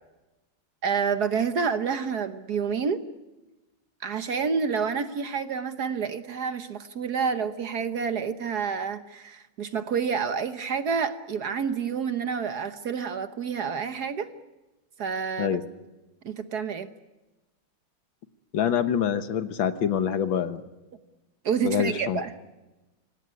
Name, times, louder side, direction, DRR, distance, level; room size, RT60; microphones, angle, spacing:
voice 1, 0.8-3.0 4.0-14.3 15.0-15.5 16.2-16.9 21.4-22.3, right 6 dB, 55° right, 10 dB, 1.4 m, -28 dB
voice 2, 18.5-20.6 21.6-22.2, left 8 dB, 70° left, 10 dB, 1.9 m, -25 dB
25.5 x 17.5 x 9.7 m, 1.1 s
omnidirectional pair, 2.3 m